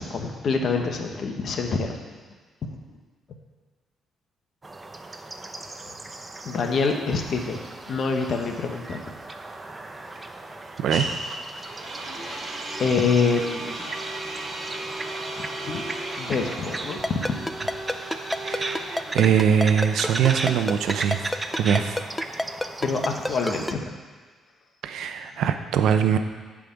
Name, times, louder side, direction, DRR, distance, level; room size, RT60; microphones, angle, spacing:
voice 1, 0.0-2.0 6.4-9.0 12.1-12.5 12.8-13.9 15.4-15.9 16.2-17.4 22.8-23.9 25.3-25.4, left 4 dB, 55° left, 4 dB, 1.1 m, -26 dB
sound 1, 4.6-23.7, right 2 dB, 20° right, 0.7 m, -37 dB
sound 2, 8.5-22.3, right 2 dB, 45° right, 2.6 m, -36 dB
Ringtone, 17.0-23.7, left 1 dB, 10° left, 0.3 m, -27 dB
voice 2, 18.4-21.3 21.6-22.0 24.8-26.2, right 8 dB, 75° right, 8 dB, 0.6 m, -22 dB
8.9 x 5.0 x 7.1 m, 1.4 s
cardioid pair, 90°, 0 cm